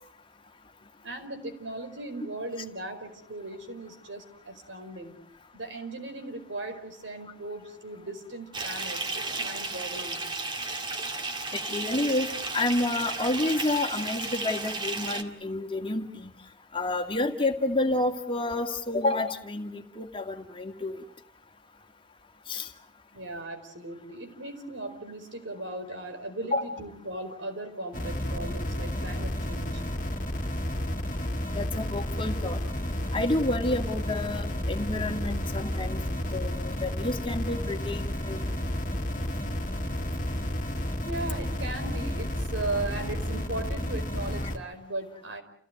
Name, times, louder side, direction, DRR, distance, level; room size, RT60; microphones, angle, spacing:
voice 1, 1.0-5.1 5.5-10.2 23.1-29.8 41.0-45.4, right 2 dB, 75° right, 6 dB, 5.0 m, -37 dB
Bathtub (filling or washing) / Fill (with liquid), 8.5-15.2, right 3 dB, 25° right, 2.2 m, -33 dB
voice 2, 11.5-12.3 12.5-16.3 16.7-21.0 22.5-22.7 26.5-26.6 31.5-32.6 33.1-36.0 36.3-38.4, left 2 dB, 25° left, 5 dB, 2.1 m, -29 dB
sound 1, 27.9-44.6, left 1 dB, 40° left, 2.0 m, -31 dB
29.5 x 17.0 x 9.3 m, 0.65 s
head